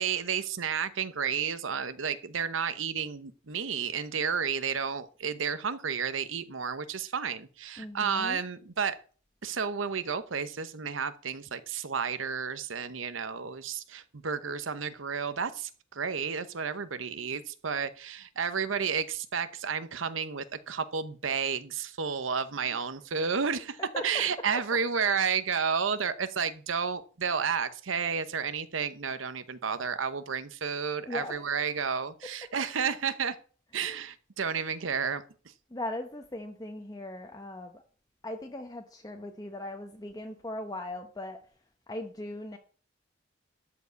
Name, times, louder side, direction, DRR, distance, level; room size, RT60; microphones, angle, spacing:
voice 1, 0.0-9.0 9.4-33.4 33.7-35.2, right 6 dB, 90° right, 0.8 m, -31 dB
voice 2, 7.8-8.4 22.7-22.8 23.8-24.0 31.1-31.6 33.8-34.0 35.7-37.8 38.2-41.4 41.9-42.6, left 1 dB, 20° left, 0.9 m, -39 dB
13.0 x 4.9 x 8.1 m
head